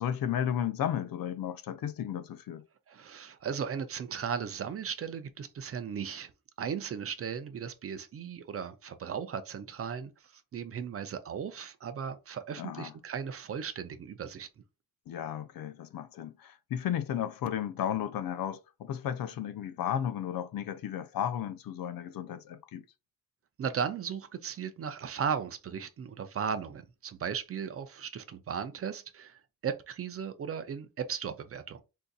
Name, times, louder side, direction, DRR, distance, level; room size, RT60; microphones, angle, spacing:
voice 1, 0.0-2.7 12.6-12.9 15.1-22.8, left 10 dB, 80° left, 0.5 m, -34 dB
voice 2, 2.9-6.3 6.6-14.5 23.6-31.8, right 7 dB, 45° right, 0.4 m, -36 dB
3.8 x 2.6 x 2.3 m
wide cardioid pair, 170°, 34 cm